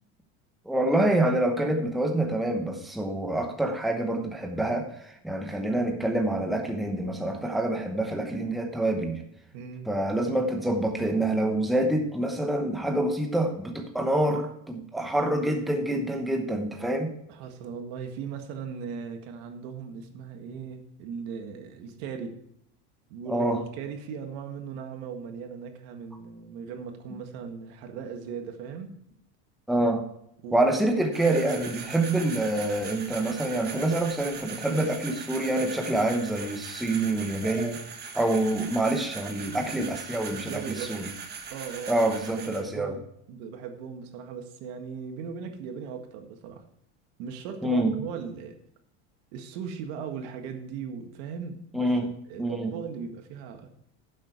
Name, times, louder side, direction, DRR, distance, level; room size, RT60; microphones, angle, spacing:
voice 1, 0.7-9.2 9.9-17.1 23.3-23.6 29.7-30.0 30.5-37.8 38.1-41.1 41.9-42.9 47.6-48.0 51.7-52.1 52.4-52.7, right 1 dB, ahead, 3 dB, 0.9 m, -26 dB
voice 2, 9.5-9.9 17.3-22.4 23.1-28.9 30.4-30.6 31.8-32.0 34.7-34.9 39.5-39.9 40.3-41.1 41.5-46.7 47.2-48.6 49.3-51.9 52.3-53.7, right 6 dB, 65° right, 6 dB, 1.7 m, -38 dB
sound 1, 31.1-42.6, right 6 dB, 30° right, 1.4 m, -40 dB
11.0 x 7.5 x 4.5 m, 0.73 s
supercardioid pair, 145°, 35 cm